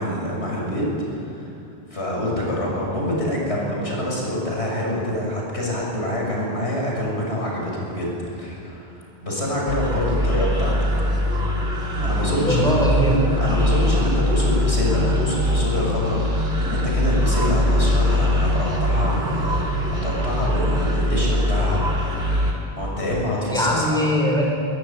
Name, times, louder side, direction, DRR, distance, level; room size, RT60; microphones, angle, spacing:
voice 1, 0.0-1.5 1.9-10.7 12.0-12.8 13.4-16.2 16.6-21.8 22.7-24.0, left 1 dB, 85° left, -3 dB, 7.2 m, -26 dB
sound 1, 9.7-22.5, left 1 dB, 70° right, 3.9 m, -22 dB
voice 2, 12.5-13.1 23.5-24.5, equal, 5° left, -2 dB, 5.9 m, -21 dB
22.5 x 21.0 x 9.3 m, 2.7 s
omnidirectional pair, 1.1 m